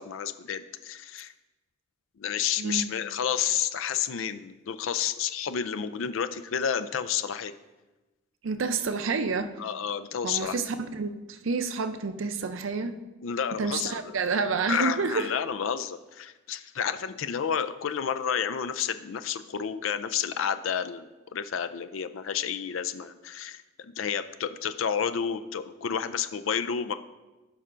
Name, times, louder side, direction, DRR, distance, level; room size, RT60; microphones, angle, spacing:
voice 1, 0.0-1.3 2.2-7.5 9.6-10.6 13.2-14.0 14.7-21.0 21.3-26.9, left 8 dB, 85° left, 12 dB, 0.4 m, -30 dB
voice 2, 2.6-3.0 8.4-9.5 10.2-13.0 13.6-15.3, right 4 dB, 80° right, 9 dB, 0.6 m, -29 dB
16.0 x 5.5 x 2.5 m, 1.1 s
head